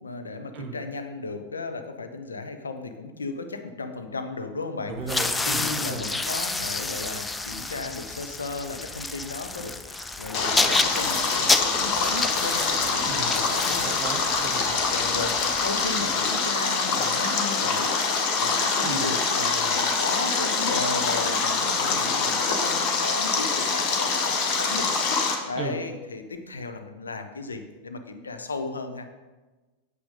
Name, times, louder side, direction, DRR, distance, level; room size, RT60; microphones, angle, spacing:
voice 1, 0.0-4.9 5.4-13.9 14.6-29.1, left 3 dB, 75° left, 7 dB, 0.9 m, -35 dB
voice 2, 4.9-6.1 13.0-13.3 13.6-14.7 18.8-19.0 25.5-25.8, right 4 dB, 35° right, 5 dB, 1.1 m, -35 dB
sound 1, 5.0-16.0, left 3 dB, 10° left, 0.5 m, -29 dB
Stream, 10.3-25.3, left 4 dB, 40° left, 1.3 m, -25 dB
8.7 x 7.8 x 3.8 m, 1.2 s
figure-of-eight pair, 90°, 0 cm